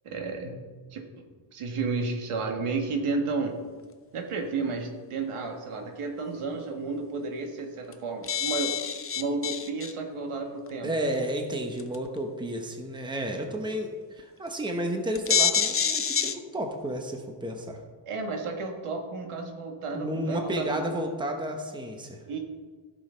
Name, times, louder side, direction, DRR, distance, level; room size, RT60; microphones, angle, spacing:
voice 1, 0.0-0.6 0.9-1.0 1.5-3.6 4.1-8.8 9.2-10.9 18.1-21.0 22.3-22.4, right 3 dB, 80° right, 3 dB, 1.7 m, -32 dB
sound 1, 7.6-7.7 7.9-8.0 8.2-9.9 10.7-10.8 11.8-12.1 14.2-14.3 14.7-14.8 15.1-16.3, left 6 dB, 30° left, 0.5 m, -26 dB
voice 2, 10.8-17.8 19.9-22.2, right 1 dB, 10° right, 3 dB, 0.9 m, -32 dB
14.5 x 6.3 x 4.5 m, 1.5 s
wide cardioid pair, 165°, 50 cm